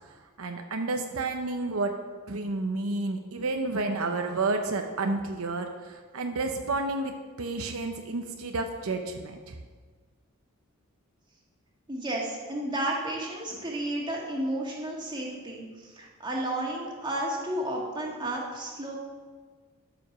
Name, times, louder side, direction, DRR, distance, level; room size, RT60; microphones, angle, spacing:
voice 1, 0.4-2.0 2.3-9.6, right 3 dB, 75° right, 5 dB, 0.7 m, -30 dB
voice 2, 11.9-19.0, right 1 dB, 20° right, -2 dB, 1.8 m, -32 dB
12.5 x 5.1 x 6.0 m, 1.5 s
head